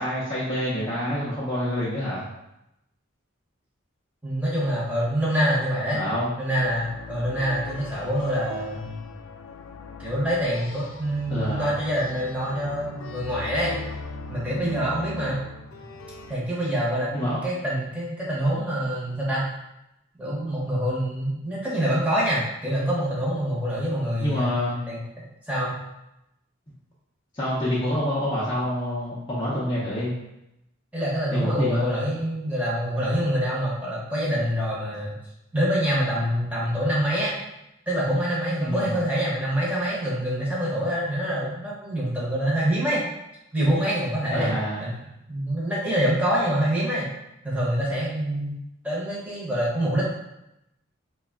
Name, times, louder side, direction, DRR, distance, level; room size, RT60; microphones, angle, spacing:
voice 1, 0.0-2.3 5.9-6.3 11.3-11.8 17.1-17.5 24.2-24.8 27.3-30.1 31.3-31.9 38.6-38.9 44.3-44.9, equal, 20° left, -9 dB, 0.6 m, -27 dB
voice 2, 4.2-6.0 6.4-9.0 10.0-13.8 14.3-15.4 16.3-19.4 20.2-24.5 24.9-25.0 25.5-25.8 30.9-35.1 35.5-37.3 37.9-43.0 43.5-44.5 44.8-47.1 47.4-48.6 48.8-50.0, equal, 5° right, -7 dB, 0.9 m, -26 dB
sound 1, 6.6-16.4, left 3 dB, 80° left, 0.3 m, -39 dB
3.3 x 2.3 x 3.6 m, 0.87 s
head